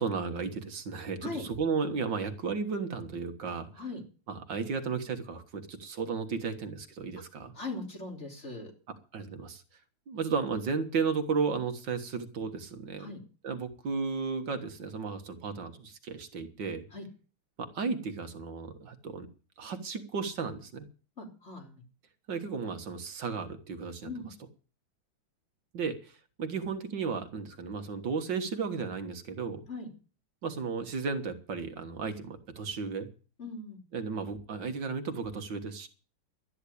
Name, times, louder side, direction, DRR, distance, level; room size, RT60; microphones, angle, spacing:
voice 1, 0.0-3.7 4.3-7.5 9.1-9.6 10.1-13.1 13.4-16.9 17.6-19.3 19.6-20.9 22.3-24.1 25.7-26.1 26.4-29.6 30.4-33.1 33.9-35.9, right 5 dB, 60° right, 7 dB, 2.1 m, -34 dB
voice 2, 7.5-8.7 13.0-13.2 16.9-17.1 21.2-21.8 24.0-24.3 29.7-29.9 33.4-33.8, left 3 dB, 30° left, 3 dB, 3.8 m, -40 dB
12.5 x 9.9 x 8.4 m, 0.38 s
omnidirectional pair, 2.3 m